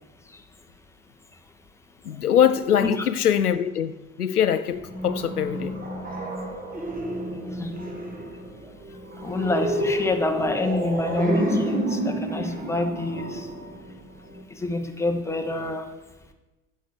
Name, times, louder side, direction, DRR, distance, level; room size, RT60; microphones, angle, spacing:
voice 1, 2.0-5.9, left 9 dB, 90° left, 0.5 m, -23 dB
sound 1, 4.7-14.4, right 1 dB, 20° right, 2.0 m, -30 dB
voice 2, 9.2-13.5 14.5-15.8, left 2 dB, 5° left, 1.1 m, -27 dB
8.0 x 6.7 x 6.6 m
figure-of-eight pair, 75°, 44 cm